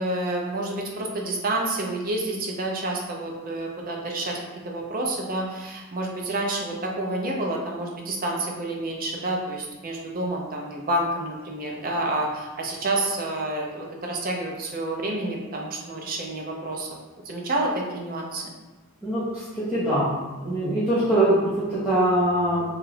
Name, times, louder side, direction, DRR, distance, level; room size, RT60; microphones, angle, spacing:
voice 1, 0.0-16.9 17.3-18.4, right 1 dB, 45° right, 0 dB, 0.5 m, -29 dB
voice 2, 19.0-19.4 19.7-20.1 20.4-22.6, right 1 dB, 5° right, -13 dB, 0.7 m, -22 dB
3.0 x 2.4 x 3.2 m, 1.2 s
head